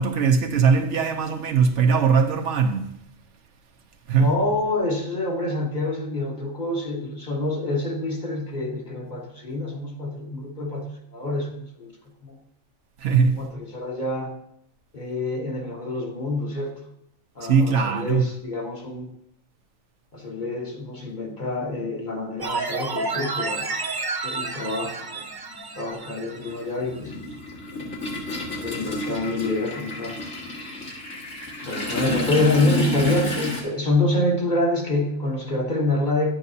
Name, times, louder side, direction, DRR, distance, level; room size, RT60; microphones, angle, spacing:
voice 1, 0.0-2.9 4.1-4.4 13.0-13.5 17.4-18.3, right 5 dB, 75° right, 1.1 m, -20 dB
voice 2, 4.2-11.9 12.2-12.4 13.4-14.3 14.9-16.7 17.3-19.1 20.1-23.7 24.2-25.3 25.7-27.1 28.6-30.2 31.6-36.3, left 2 dB, 40° left, 1.3 m, -26 dB
sound 1, 22.4-26.6 27.0-27.1, right 3 dB, 30° right, 0.5 m, -30 dB
Toilet flush, 23.1-23.2 24.5-24.6 25.0-33.6, left 2 dB, 85° left, 2.2 m, -31 dB
11.0 x 8.7 x 2.7 m
omnidirectional pair, 1.2 m